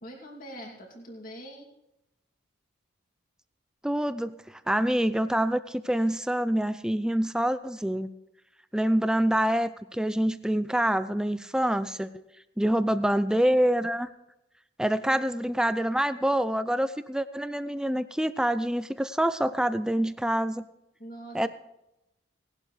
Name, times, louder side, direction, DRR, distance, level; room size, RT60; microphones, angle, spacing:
voice 1, 0.0-1.7 15.1-15.2 21.0-21.5, equal, 40° left, 0 dB, 2.7 m, -43 dB
voice 2, 3.8-8.1 8.7-12.2 12.6-14.1 14.8-20.6 21.3-21.5, right 1 dB, 5° right, 12 dB, 0.4 m, -26 dB
18.5 x 11.5 x 3.3 m, 0.88 s
head